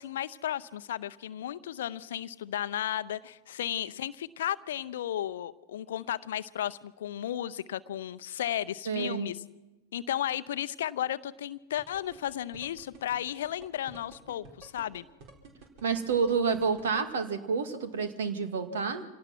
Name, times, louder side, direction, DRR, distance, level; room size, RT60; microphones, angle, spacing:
voice 1, 0.0-9.4 9.9-15.0, left 11 dB, 65° left, 16 dB, 0.7 m, -34 dB
voice 2, 8.9-9.3 15.8-19.1, right 5 dB, 65° right, 9 dB, 2.1 m, -29 dB
sound 1, 11.8-17.0, right 3 dB, 45° right, 4.4 m, -50 dB
26.0 x 17.5 x 6.0 m, 1.1 s
figure-of-eight pair, 90°, 0 cm